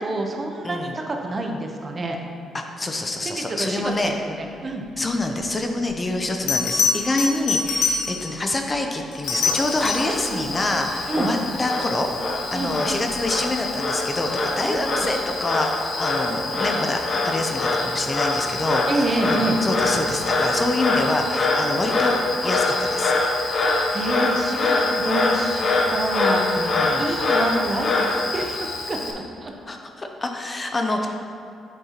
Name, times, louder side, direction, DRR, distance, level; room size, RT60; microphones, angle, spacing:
voice 1, 0.0-2.2 3.2-3.9 4.2-4.8 10.1-10.5 11.0-11.3 12.5-12.7 14.6-15.1 18.9-19.6 23.6-29.5, right 2 dB, 35° right, 2 dB, 0.7 m, -28 dB
voice 2, 2.5-4.1 5.0-12.1 12.5-23.1 26.6-27.1 29.7-31.1, left 2 dB, 25° left, 3 dB, 0.6 m, -26 dB
Bell, 5.8-5.9 6.5-8.4 9.1-10.2 12.9-13.1, left 4 dB, 85° left, 1.0 m, -24 dB
Frog, 9.2-29.1, left 2 dB, 55° left, 0.8 m, -24 dB
8.2 x 5.4 x 2.9 m, 2.6 s
cardioid pair, 90°, 0 cm